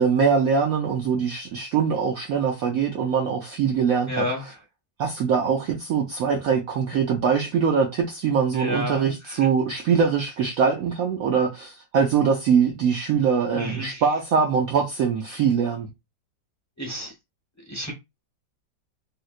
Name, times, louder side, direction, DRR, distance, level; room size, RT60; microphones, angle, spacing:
voice 1, 0.0-4.5 5.0-15.9, right 6 dB, 80° right, 0.8 m, -23 dB
voice 2, 4.1-4.4 8.5-9.4 13.5-14.0 16.8-17.1 17.7-17.9, left 1 dB, 15° left, 0.5 m, -30 dB
3.2 x 2.8 x 2.4 m
omnidirectional pair, 2.1 m